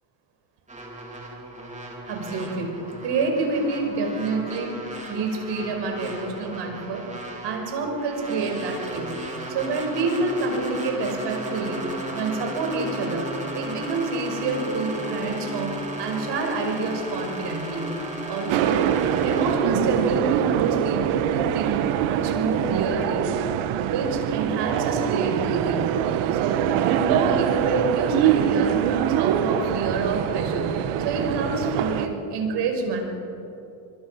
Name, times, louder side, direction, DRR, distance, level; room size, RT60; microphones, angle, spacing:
sound 1, 0.7-19.6, right 1 dB, 15° right, 4.0 m, -34 dB
voice 1, 2.1-4.8 5.1-7.0 7.4-9.2 9.5-11.8 12.1-18.0 18.3-18.8 19.2-21.8 22.1-23.3 23.7-25.9 26.3-33.1, right 3 dB, 55° right, 3 dB, 5.8 m, -28 dB
sound 2, 18.5-32.1, right 10 dB, 75° right, 1.5 m, -24 dB
25.5 x 23.0 x 5.9 m, 2.8 s
cardioid pair, 135°, 49 cm